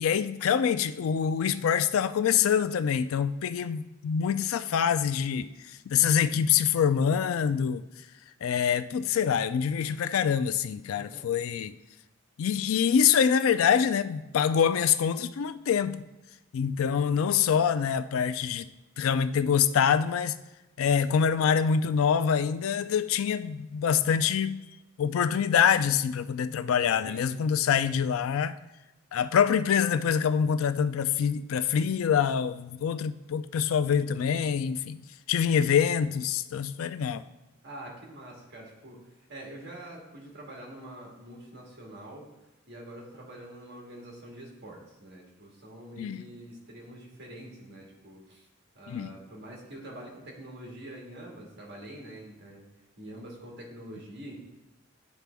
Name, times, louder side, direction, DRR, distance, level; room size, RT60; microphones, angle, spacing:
voice 1, 0.0-7.8 8.4-11.7 12.4-16.0 16.5-18.7 19.0-20.4 20.8-24.6 25.0-28.5 29.1-35.0 35.3-37.2 46.0-46.2 48.9-49.2, left 7 dB, 80° left, 0.4 m, -25 dB
voice 2, 37.6-42.3 42.7-48.5 48.8-52.7 53.0-54.4, right 1 dB, 55° right, 1.8 m, -45 dB
10.5 x 4.1 x 3.4 m
head